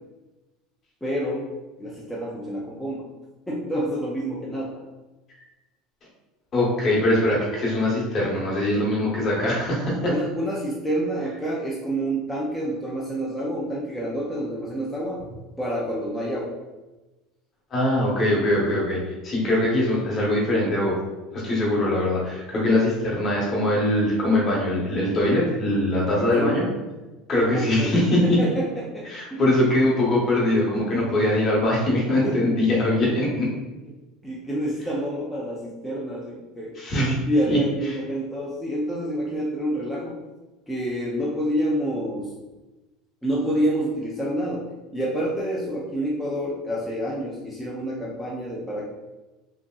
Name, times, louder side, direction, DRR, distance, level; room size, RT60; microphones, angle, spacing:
voice 1, 1.0-1.5 1.8-3.0 3.5-4.8 10.1-15.2 15.6-16.5 22.5-22.7 26.2-26.6 27.5-27.9 28.2-29.4 32.2-32.9 34.2-36.8 37.3-40.2 40.7-42.3 43.2-48.9, equal, 5° left, -5 dB, 0.3 m, -28 dB
voice 2, 6.5-10.1 17.7-21.0 21.3-26.6 27.3-28.4 29.1-33.5 36.7-37.1 37.5-37.6, left 1 dB, 25° left, -4 dB, 0.8 m, -22 dB
3.0 x 2.6 x 2.2 m, 1.1 s
cardioid pair, 175°, 0 cm